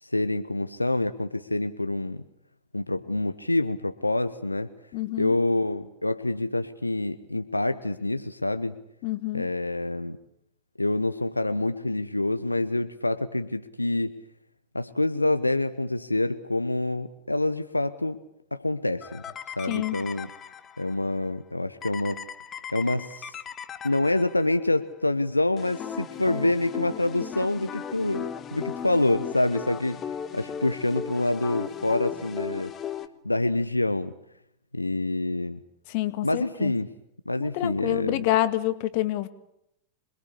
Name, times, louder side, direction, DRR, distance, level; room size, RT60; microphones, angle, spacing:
voice 1, 0.0-2.2 2.7-4.7 5.2-8.8 9.3-10.2 10.8-14.1 14.7-18.2 18.5-19.2 19.6-20.3 20.8-22.2 22.7-23.4 23.8-30.0 30.3-32.7 33.2-34.1 34.7-35.6 36.2-36.9 37.3-38.2, left 2 dB, 85° left, 10 dB, 0.9 m, -26 dB
voice 2, 4.9-5.4 9.0-9.5 19.6-20.0 35.9-36.7 37.4-39.3, left 15 dB, 45° left, 11 dB, 2.0 m, -27 dB
sound 1, 19.0-20.9 21.8-24.6 25.6-33.1, left 8 dB, 25° left, 1.6 m, -37 dB
26.5 x 21.5 x 8.4 m, 0.78 s
figure-of-eight pair, 90°, 0 cm